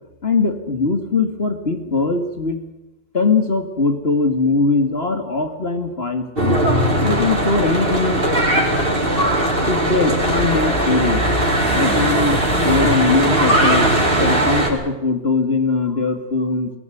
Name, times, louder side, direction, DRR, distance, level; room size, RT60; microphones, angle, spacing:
voice 1, 0.2-2.6 3.1-6.6 7.0-8.2 9.7-11.2 11.7-13.9 14.2-16.7, left 3 dB, 55° left, 5 dB, 2.7 m, -20 dB
Church bell / Traffic noise roadway noise, 6.4-14.7, right 1 dB, 50° right, 5.0 m, -18 dB
22.0 x 17.5 x 9.4 m, 1.0 s
omnidirectional pair, 1.2 m